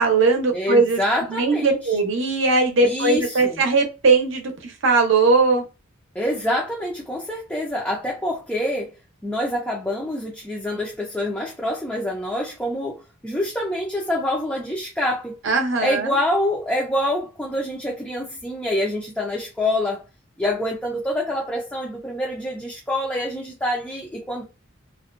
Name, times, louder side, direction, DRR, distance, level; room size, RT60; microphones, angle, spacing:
voice 1, 0.0-1.0 1.3-5.6 15.4-16.1, right 3 dB, 65° right, 0.7 m, -19 dB
voice 2, 0.5-1.8 2.8-3.6 6.1-8.9 9.2-15.4 15.8-20.0 20.4-24.4, left 1 dB, 5° left, 0.4 m, -26 dB
2.5 x 2.2 x 2.4 m
head